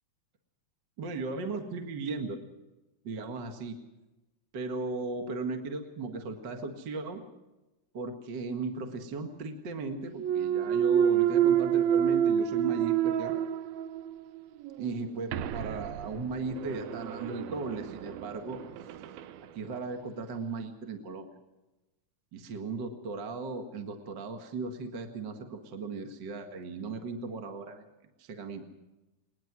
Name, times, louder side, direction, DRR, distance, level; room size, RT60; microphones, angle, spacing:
voice 1, 1.0-2.4 3.0-3.8 4.5-7.2 7.9-13.3 14.8-18.6 19.5-21.3 22.3-27.8 28.2-28.6, right 3 dB, 40° right, 5 dB, 1.7 m, -37 dB
Thump thud, 10.1-14.2 14.6-19.3, right 9 dB, 80° right, 2.7 m, -28 dB
21.0 x 20.5 x 6.1 m, 1.0 s
omnidirectional pair, 4.3 m